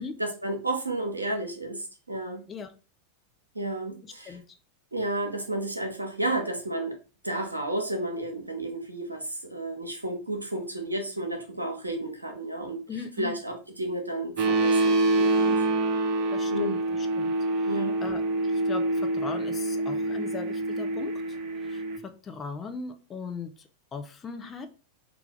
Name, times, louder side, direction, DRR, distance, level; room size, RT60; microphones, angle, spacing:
voice 1, 0.2-2.4 3.5-4.4 4.9-7.0 7.2-12.8 13.2-15.7 16.5-16.8 17.7-18.0, right 1 dB, 85° right, 3 dB, 0.7 m, -32 dB
voice 2, 12.9-13.3 16.3-17.3 17.6-21.4 21.6-24.7, left 5 dB, 20° left, 7 dB, 0.4 m, -39 dB
sound 1, 14.4-22.0, right 2 dB, 40° right, 0.5 m, -26 dB
3.2 x 2.3 x 3.7 m, 0.34 s
figure-of-eight pair, 90°, 0 cm